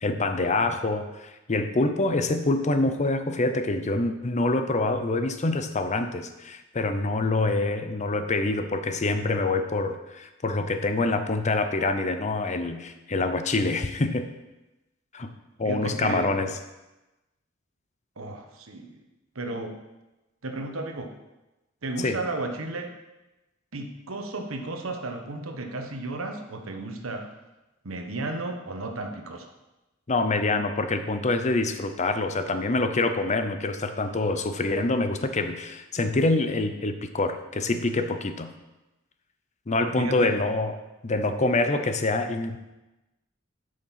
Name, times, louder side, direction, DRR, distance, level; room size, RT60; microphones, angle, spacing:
voice 1, 0.0-14.3 15.1-15.3 15.6-16.5 22.0-22.2 30.1-38.5 39.7-40.8 41.0-42.6, left 2 dB, 35° left, 8 dB, 0.7 m, -26 dB
voice 2, 15.6-16.3 18.2-19.0 19.3-19.7 20.4-21.1 21.8-22.9 23.7-27.3 27.8-29.5 40.0-40.3, right 2 dB, 80° right, 4 dB, 1.2 m, -33 dB
8.5 x 6.4 x 5.9 m, 1.0 s
head